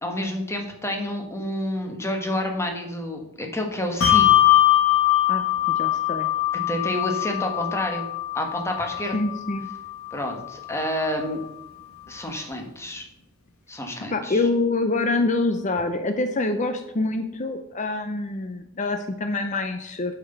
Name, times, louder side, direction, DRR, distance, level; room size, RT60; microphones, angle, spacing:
voice 1, 0.0-4.3 6.7-8.1 8.3-9.1 10.1-11.4 12.1-13.1 13.7-14.5, left 1 dB, 15° left, 2 dB, 1.3 m, -29 dB
Bell, 4.0-10.9, left 13 dB, 85° left, 1.4 m, -22 dB
voice 2, 5.3-6.3 9.1-9.7 14.1-20.1, left 2 dB, 35° left, 7 dB, 0.6 m, -26 dB
7.7 x 5.9 x 6.6 m, 0.84 s
head